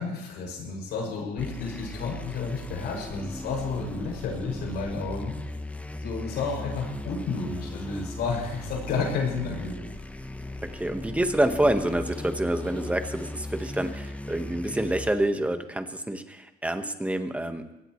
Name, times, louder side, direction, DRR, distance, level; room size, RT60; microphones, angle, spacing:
voice 1, 0.0-5.3 6.0-9.8, left 4 dB, 75° left, 0 dB, 6.8 m, -31 dB
sound 1, 1.4-15.1, left 1 dB, 10° left, 1.1 m, -37 dB
voice 2, 10.7-17.6, right 1 dB, 10° right, 7 dB, 1.5 m, -27 dB
23.5 x 18.0 x 3.3 m, 0.95 s
cardioid pair, 110°, 17 cm